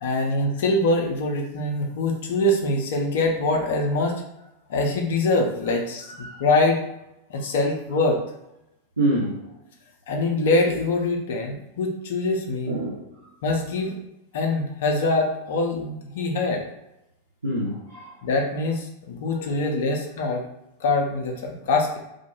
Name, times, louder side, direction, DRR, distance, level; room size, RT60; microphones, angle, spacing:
voice 1, 0.0-4.2 4.7-6.8 7.3-8.2 10.1-12.7 13.4-14.0 14.3-16.6 18.2-20.4 20.8-22.0, left 2 dB, 55° left, 1 dB, 0.4 m, -24 dB
voice 2, 6.1-6.4 9.0-9.4 12.7-13.2 17.4-18.1 19.3-19.7, right 1 dB, 80° right, -8 dB, 0.6 m, -27 dB
2.2 x 2.1 x 2.9 m, 0.87 s
figure-of-eight pair, 90°, 0 cm